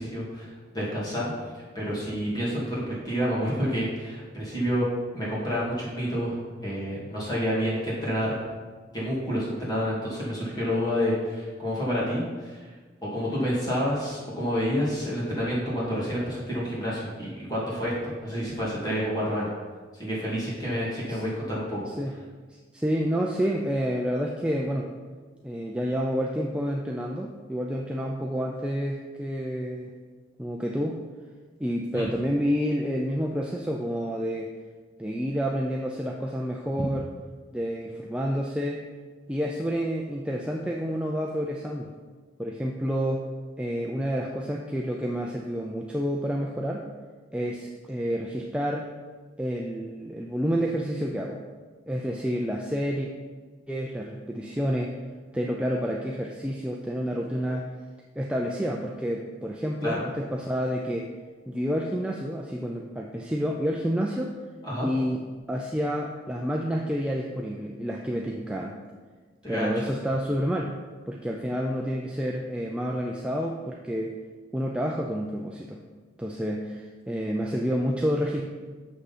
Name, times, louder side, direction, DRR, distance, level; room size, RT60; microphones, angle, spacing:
voice 1, 0.0-4.9 5.1-8.4 8.9-12.7 13.0-19.5 19.9-21.9 31.9-32.0 59.8-60.0 64.6-64.9 69.4-69.9, equal, 20° left, -7 dB, 2.5 m, -29 dB
voice 2, 22.5-24.9 25.4-29.9 30.4-31.0 31.6-34.5 35.0-37.1 37.5-38.8 39.3-41.9 42.4-43.3 43.6-46.9 47.3-48.9 49.4-51.4 51.9-53.1 53.7-54.9 55.3-57.7 58.2-61.1 61.5-64.4 64.8-68.8 69.5-70.7 71.1-74.2 74.5-75.8 76.2-78.4, equal, 5° right, -1 dB, 0.4 m, -29 dB
6.8 x 6.3 x 5.7 m, 1.4 s
head